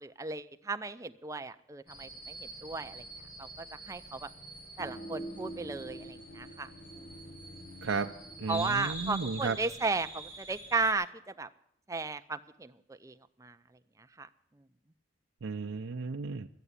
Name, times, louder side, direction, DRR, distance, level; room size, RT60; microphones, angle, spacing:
voice 1, 0.0-3.0 3.4-4.3 4.8-6.7 7.0-7.1 8.5-11.5 11.9-13.1 13.4-13.6 14.2-14.3, right 3 dB, 15° right, 10 dB, 0.4 m, -35 dB
sound 1, 1.9-10.9, right 1 dB, 50° left, 4.0 m, -46 dB
sound 2, 4.8-10.2, right 1 dB, 80° left, 1.1 m, -47 dB
voice 2, 7.8-9.6 15.4-16.5, right 4 dB, 80° right, 5 dB, 0.5 m, -34 dB
12.0 x 9.0 x 9.8 m, 0.78 s
head